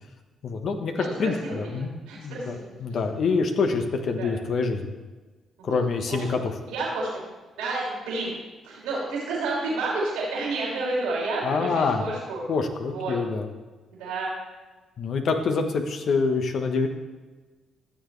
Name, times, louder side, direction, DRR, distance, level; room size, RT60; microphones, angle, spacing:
voice 1, 0.4-4.8 5.6-6.4 11.4-12.1 12.5-13.5 15.0-16.9, left 4 dB, 65° left, 5 dB, 1.2 m, -26 dB
voice 2, 1.0-2.7 4.2-4.3 5.6-5.8 6.1-6.2 6.7-7.2 7.6-8.3 8.6-12.4 12.9-13.1 14.0-14.3, right 2 dB, 85° right, -5 dB, 3.0 m, -30 dB
14.0 x 7.0 x 3.3 m, 1.3 s
supercardioid pair, 50°, 0 cm